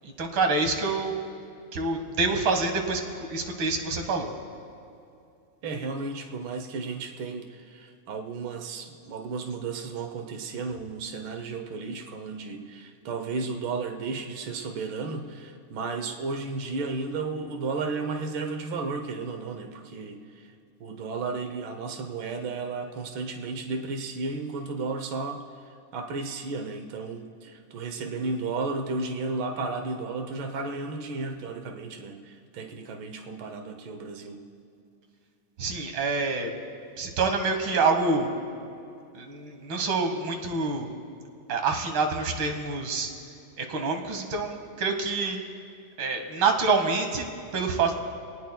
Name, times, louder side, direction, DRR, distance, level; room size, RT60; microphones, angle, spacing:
voice 1, 0.0-1.2 1.7-3.0 3.3-4.3 35.6-36.5 37.0-38.3 39.1-40.9 41.5-43.1 43.6-45.4 46.0-47.3 47.5-47.9, right 4 dB, 50° right, 5 dB, 1.7 m, -26 dB
voice 2, 5.6-20.5 20.8-34.4, right 3 dB, 85° right, 6 dB, 1.1 m, -33 dB
26.0 x 19.0 x 2.3 m, 2.5 s
omnidirectional pair, 3.4 m